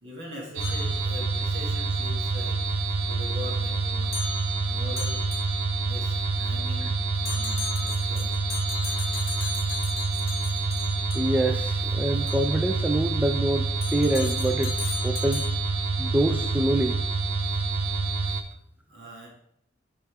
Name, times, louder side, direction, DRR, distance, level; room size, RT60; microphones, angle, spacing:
voice 1, 0.0-2.6 3.0-5.3 5.8-8.4 18.9-19.3, left 1 dB, 60° right, -2 dB, 2.3 m, -42 dB
sound 1, 0.6-1.6 4.1-5.9 7.3-11.6 12.3-12.5 13.8-15.9, left 8 dB, 65° left, 0.7 m, -38 dB
sound 2, 0.6-18.4, right 3 dB, 80° right, 0.7 m, -27 dB
voice 2, 11.1-14.8 15.0-15.5 16.0-17.0 18.2-18.4, right 1 dB, 10° right, 3 dB, 0.3 m, -26 dB
10.0 x 4.3 x 3.5 m, 0.71 s
head